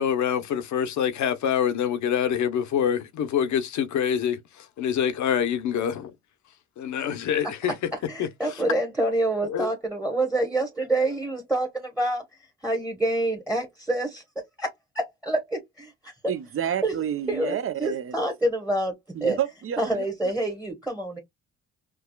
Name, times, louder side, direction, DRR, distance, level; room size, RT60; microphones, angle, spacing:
voice 1, 0.0-6.1 6.8-7.7 8.2-8.3 9.4-9.7, left 8 dB, 70° left, 0.8 m, -26 dB
voice 2, 8.1-12.2 12.6-14.2 14.6-16.1 16.8-16.9 17.3-18.9 19.2-19.4 19.8-21.2, right 1 dB, 5° right, 1.0 m, -27 dB
voice 3, 16.3-18.2 19.1-20.3, right 9 dB, 45° right, 0.6 m, -30 dB
4.6 x 2.3 x 2.2 m
cardioid pair, 90°, 30 cm